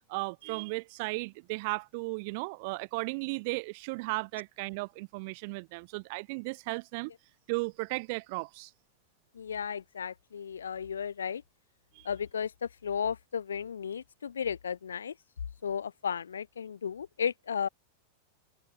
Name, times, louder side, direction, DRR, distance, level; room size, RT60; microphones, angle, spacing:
voice 1, 0.1-7.1 7.5-8.7 11.9-12.1, right 28 dB, 45° right, 0.3 m, -35 dB
voice 2, 9.3-11.4 12.0-15.1 15.6-17.7, left 7 dB, 70° left, 0.4 m, -34 dB
figure-of-eight pair, 90°, 0 cm